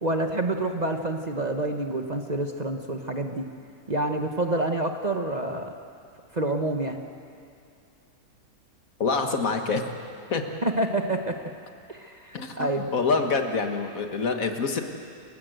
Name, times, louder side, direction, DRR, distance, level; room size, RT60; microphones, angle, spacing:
voice 1, 0.0-3.5 3.9-5.7 6.3-7.0 10.6-11.4 11.9-12.9, right 1 dB, 30° right, 4 dB, 1.1 m, -28 dB
voice 2, 9.0-9.8 10.3-10.5 12.3-14.8, left 4 dB, 65° left, 5 dB, 1.8 m, -26 dB
28.0 x 15.0 x 7.9 m, 2.4 s
omnidirectional pair, 1.6 m